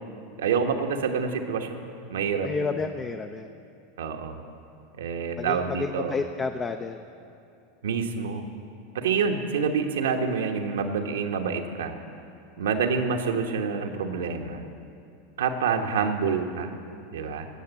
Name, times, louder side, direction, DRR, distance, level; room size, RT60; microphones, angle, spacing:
voice 1, 0.4-1.8 2.1-2.7 4.0-4.4 4.9-6.2 7.8-8.5 8.9-11.9 12.6-14.6 15.4-16.7 17.1-17.5, right 6 dB, 85° right, 4 dB, 1.2 m, -27 dB
voice 2, 2.4-3.5 5.4-7.0, left 4 dB, 25° left, 7 dB, 0.6 m, -30 dB
18.0 x 6.6 x 8.2 m, 2.5 s
hypercardioid pair, 105°, 0 cm